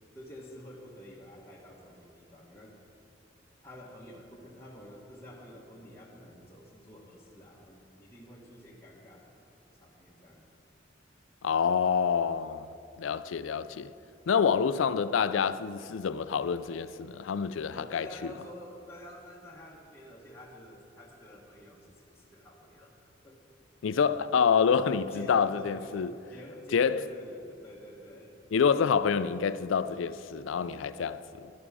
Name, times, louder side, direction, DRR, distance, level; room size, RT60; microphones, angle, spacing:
voice 1, 0.1-2.8 3.6-9.3 9.8-10.4 17.7-23.0 23.2-23.4 25.1-28.4, equal, 15° left, 1.1 m, -49 dB
voice 2, 11.4-12.7 13.0-13.9 14.3-18.1 23.8-26.1 26.7-27.1 28.5-31.5, left 6 dB, 85° left, 0.4 m, -27 dB
11.5 x 11.0 x 4.8 m
head